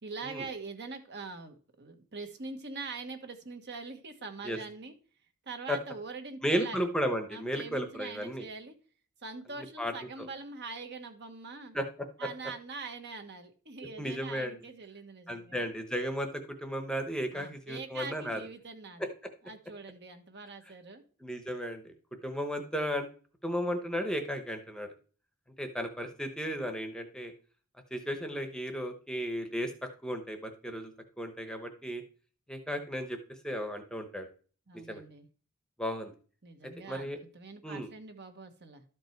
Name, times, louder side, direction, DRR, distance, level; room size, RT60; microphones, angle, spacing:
voice 1, 0.0-4.9 5.4-6.9 7.3-8.7 9.2-11.8 12.2-15.7 17.3-19.1 19.4-21.0 34.7-35.3 36.4-38.8, right 4 dB, 55° right, 7 dB, 1.3 m, -43 dB
voice 2, 6.4-8.4 9.8-10.3 11.7-11.9 14.0-14.6 15.3-16.3 16.6-18.4 21.2-21.9 22.2-23.1 23.4-24.9 25.6-27.3 27.9-29.7 30.0-32.0 32.5-34.3 34.9-35.0 35.8-36.1 36.9-37.2 37.6-37.9, equal, 5° left, 6 dB, 0.9 m, -34 dB
12.5 x 5.3 x 4.6 m, 0.41 s
head